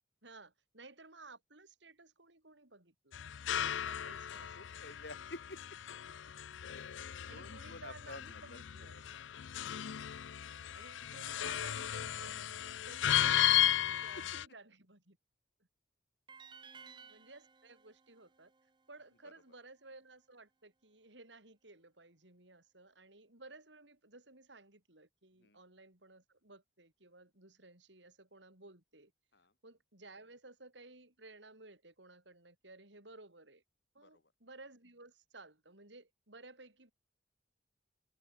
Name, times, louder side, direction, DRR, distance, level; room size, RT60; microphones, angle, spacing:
voice 1, 0.2-3.3 3.6-4.6 4.9-5.0 7.3-9.0 10.7-15.2 17.1-18.5 18.9-29.1 29.6-33.6 33.9-36.9, right 2 dB, 75° right, 6.1 m, -56 dB
sound 1, 3.1-14.5, left 11 dB, 85° left, 0.5 m, -35 dB
voice 2, 4.6-5.6 6.7-7.0 7.3-9.2 14.2-14.3 16.6-17.2 19.2-19.3 25.4-25.6 29.3-29.5 34.0-34.3, left 2 dB, 60° left, 2.7 m, -52 dB
sound 2, 16.3-19.4, right 6 dB, 25° right, 0.6 m, -57 dB
head